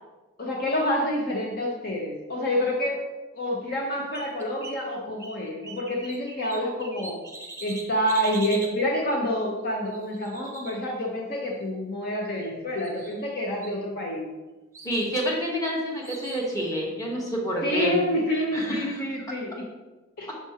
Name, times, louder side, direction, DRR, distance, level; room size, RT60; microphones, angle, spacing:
voice 1, 0.4-3.0 3.3-7.2 7.6-14.3 17.6-19.7 20.2-20.3, left 1 dB, 45° left, -1 dB, 0.7 m, -28 dB
sound 1, 3.7-4.8 5.2-8.8 9.9-11.3 12.2-12.5 12.8-13.4 13.6-14.4 14.7-15.1 16.0-16.5, right 2 dB, 15° right, 0.6 m, -42 dB
voice 2, 14.8-17.9 18.3-19.0, equal, 15° left, -3 dB, 1.1 m, -28 dB
5.9 x 5.6 x 2.9 m, 1.1 s
head